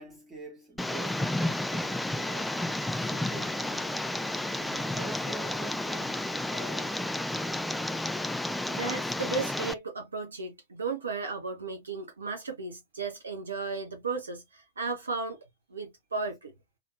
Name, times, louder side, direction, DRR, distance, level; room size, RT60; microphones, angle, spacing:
voice 1, 0.0-3.9 4.5-7.2, right 3 dB, 15° right, 1.9 m, -47 dB
Tick, 0.8-9.7, left 1 dB, 5° left, 0.4 m, -31 dB
voice 2, 8.6-15.4 15.7-16.5, right 4 dB, 75° right, 0.9 m, -35 dB
3.6 x 3.5 x 2.5 m
figure-of-eight pair, 90°, 0 cm